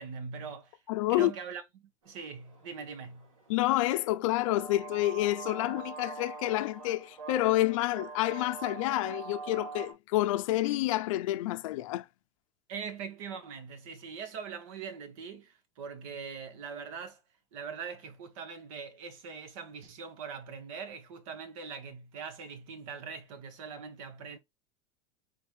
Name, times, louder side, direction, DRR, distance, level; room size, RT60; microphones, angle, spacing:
voice 1, 0.0-0.8 1.1-3.3 12.7-17.2 17.5-24.4, right 6 dB, 75° right, 1.5 m, -42 dB
voice 2, 0.9-1.3 3.5-12.0, left 16 dB, 75° left, 0.7 m, -28 dB
sound 1, 2.1-9.9, right 5 dB, 90° right, 2.3 m, -44 dB
4.0 x 4.0 x 3.3 m
supercardioid pair, 120°, 17 cm